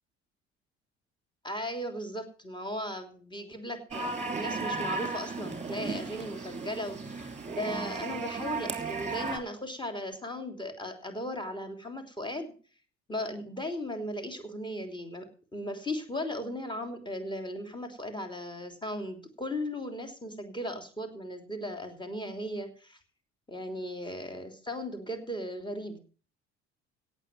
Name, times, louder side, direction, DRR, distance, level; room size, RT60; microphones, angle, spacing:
voice 1, 1.4-12.5 13.1-23.0 23.5-26.1, left 1 dB, 15° left, 6 dB, 3.2 m, -37 dB
sound 1, 3.9-9.4, right 4 dB, 20° right, 3.1 m, -35 dB
17.0 x 6.8 x 7.6 m, 0.40 s
figure-of-eight pair, 55°, 33 cm